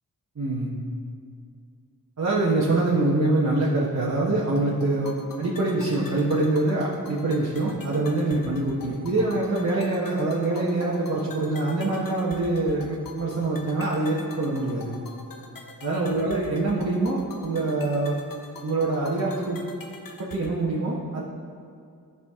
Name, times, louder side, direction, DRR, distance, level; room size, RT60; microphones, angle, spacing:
voice 1, 0.3-0.7 2.2-14.9 15.8-18.1 18.6-19.6 20.2-21.2, right 2 dB, 45° right, -7 dB, 1.4 m, -25 dB
sound 1, 4.6-20.6, left 3 dB, 70° left, 1.0 m, -44 dB
14.0 x 6.2 x 3.7 m, 2.4 s
wide cardioid pair, 110°, 35 cm